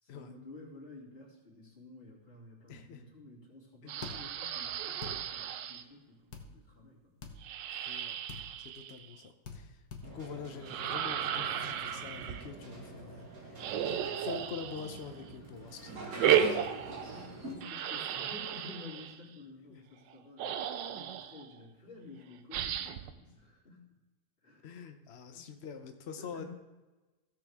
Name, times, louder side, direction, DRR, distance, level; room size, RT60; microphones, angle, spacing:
voice 1, 0.0-7.2 16.7-23.9 24.4-24.7 25.1-25.6 26.2-26.5, left 3 dB, 30° left, -5 dB, 2.9 m, -52 dB
voice 2, 2.7-3.0 3.8-4.0 7.7-8.2 8.6-16.4 19.7-19.8 24.6-26.4, left 6 dB, 80° left, 6 dB, 0.5 m, -46 dB
sound 1, 3.9-5.8 7.4-9.2 10.6-12.5 13.6-15.2 16.2-17.3 17.6-19.2 20.1-20.2 20.4-21.5 22.5-23.1, right 9 dB, 75° right, 1.2 m, -34 dB
sound 2, 4.0-4.2 5.0-5.2 6.3-6.5 7.2-7.4 8.3-8.4 9.4-9.6 9.9-10.1, left 5 dB, 55° left, 1.6 m, -43 dB
sound 3, 10.0-17.5, right 2 dB, 50° right, 2.0 m, -45 dB
16.0 x 6.8 x 3.5 m, 1.2 s
omnidirectional pair, 2.1 m